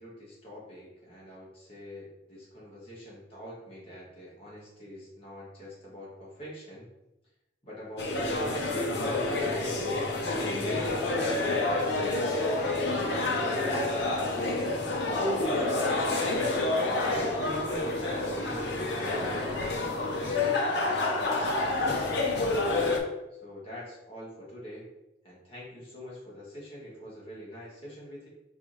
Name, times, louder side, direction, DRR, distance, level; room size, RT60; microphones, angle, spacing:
voice 1, 0.0-6.9 7.6-9.7 10.3-15.9 16.8-17.9 18.2-19.7 20.2-22.6 23.3-24.9 25.2-28.3, equal, 30° left, -7 dB, 1.5 m, -44 dB
sound 1, 8.0-23.0, left 2 dB, 70° left, 0.7 m, -28 dB
4.7 x 2.7 x 3.1 m, 0.97 s
head